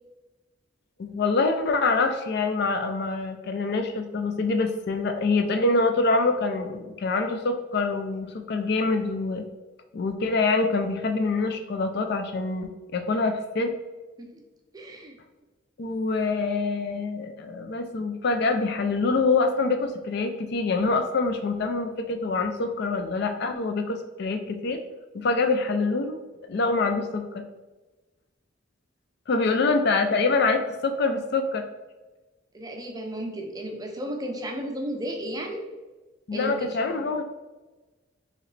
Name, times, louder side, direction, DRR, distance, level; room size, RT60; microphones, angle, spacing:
voice 1, 1.0-9.4 9.9-13.7 15.8-24.8 25.1-26.2 26.5-27.4 29.3-31.6 36.3-37.2, left 3 dB, 55° left, 6 dB, 0.4 m, -25 dB
voice 2, 14.7-15.2 29.5-29.7 32.5-35.7 36.3-36.8, equal, 20° right, 3 dB, 0.5 m, -34 dB
4.8 x 3.0 x 3.2 m, 1.2 s
head